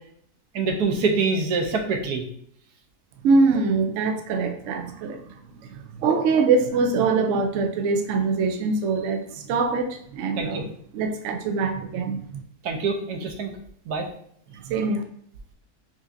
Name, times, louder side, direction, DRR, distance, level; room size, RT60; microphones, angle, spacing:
voice 1, 0.5-2.3 10.4-10.6 12.6-13.5 13.9-14.1, right 4 dB, 80° right, 3 dB, 1.3 m, -25 dB
voice 2, 3.2-5.3 5.7-10.6 10.9-12.4 14.6-15.0, right 4 dB, 65° right, 5 dB, 0.8 m, -23 dB
5.6 x 2.7 x 2.5 m, 0.65 s
omnidirectional pair, 1.7 m